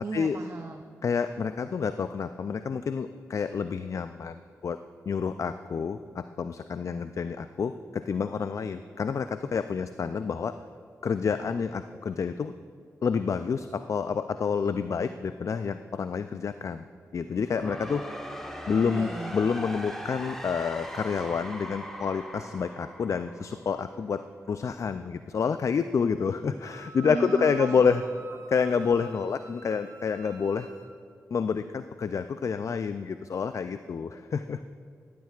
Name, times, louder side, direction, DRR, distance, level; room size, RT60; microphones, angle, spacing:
voice 1, 0.0-0.8 18.7-19.3 27.1-27.9, right 3 dB, 45° right, 5 dB, 0.6 m, -36 dB
voice 2, 1.0-4.8 5.1-10.5 11.0-12.5 13.0-16.9 17.1-18.0 18.7-28.0 28.5-30.7 31.3-34.6, left 6 dB, 55° left, 11 dB, 0.3 m, -28 dB
sound 1, 17.2-24.2, equal, 5° left, 1.5 m, -40 dB
Wind instrument woodwind instrument, 26.6-30.9, right 2 dB, 80° right, 1.2 m, -46 dB
13.0 x 12.0 x 2.4 m, 2.2 s
supercardioid pair, 45°, 6 cm